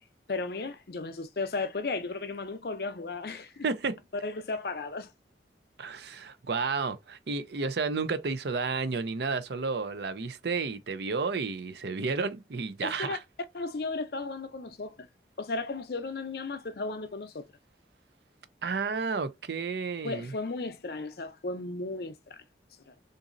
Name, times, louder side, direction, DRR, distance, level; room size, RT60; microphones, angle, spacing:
voice 1, 0.3-3.7 4.2-5.1 12.8-13.2 13.5-15.1 15.4-17.5 20.0-22.4 22.9-23.0, left 3 dB, 60° left, 0.5 m, -35 dB
voice 2, 3.6-4.0 5.8-13.2 18.6-20.3, right 4 dB, 70° right, 0.5 m, -31 dB
3.9 x 2.6 x 2.5 m
head